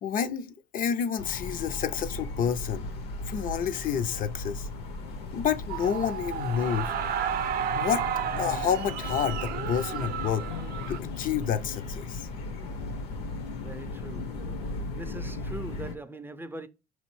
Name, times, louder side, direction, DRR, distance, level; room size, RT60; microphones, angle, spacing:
voice 1, 0.0-2.9 3.3-4.7 5.3-6.9 7.8-8.0 8.4-10.5 10.9-12.3, left 8 dB, 55° left, 0.6 m, -29 dB
sound 1, 1.2-15.9, left 3 dB, 75° left, 1.0 m, -36 dB
sound 2, 5.7-11.0, right 9 dB, 60° right, 0.5 m, -32 dB
voice 2, 13.6-14.4 15.0-16.7, right 2 dB, 10° right, 0.4 m, -41 dB
5.1 x 3.1 x 3.1 m
cardioid pair, 95°, 17 cm